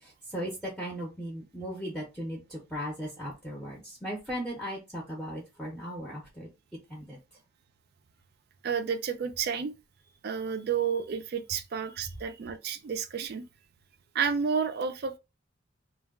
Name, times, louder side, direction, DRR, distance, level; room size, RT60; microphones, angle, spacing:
voice 1, 0.0-6.5 6.9-7.2, equal, ahead, 0.7 m, -37 dB
voice 2, 8.6-9.7 10.2-13.5 14.1-15.2, right 6 dB, 55° right, 0.4 m, -31 dB
2.2 x 2.2 x 3.4 m
head